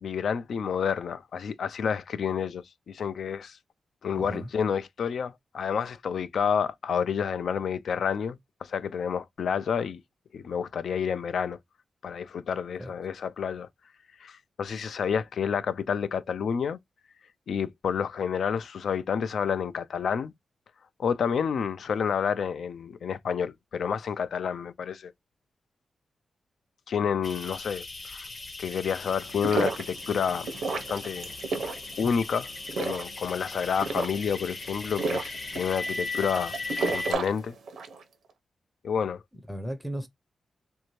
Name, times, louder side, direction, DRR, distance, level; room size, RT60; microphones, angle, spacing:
voice 1, 0.0-3.6 4.0-10.0 10.3-11.6 12.0-13.7 14.2-16.8 17.5-20.3 21.0-25.1 26.9-28.3 28.6-31.3 32.0-32.5 32.8-36.5 36.9-37.6 38.8-39.2, left 7 dB, 70° left, 0.4 m, -29 dB
voice 2, 4.1-4.5 12.8-12.9 39.5-40.1, right 1 dB, ahead, 0.6 m, -35 dB
sound 1, 27.2-37.1, left 3 dB, 45° left, 1.0 m, -38 dB
sound 2, 29.2-38.0, right 4 dB, 80° right, 0.7 m, -33 dB
3.3 x 2.6 x 3.0 m
wide cardioid pair, 125°, 0 cm